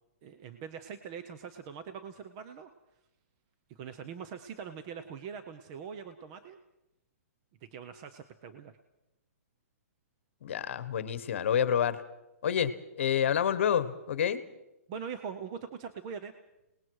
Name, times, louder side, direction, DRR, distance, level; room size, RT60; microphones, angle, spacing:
voice 1, 0.2-2.7 3.7-6.6 7.6-8.7 14.9-16.3, right 7 dB, 25° right, 9 dB, 0.7 m, -42 dB
voice 2, 10.4-12.0 12.4-14.4, left 8 dB, 50° left, 13 dB, 1.2 m, -28 dB
28.5 x 19.5 x 4.7 m, 0.92 s
hypercardioid pair, 170°, 8 cm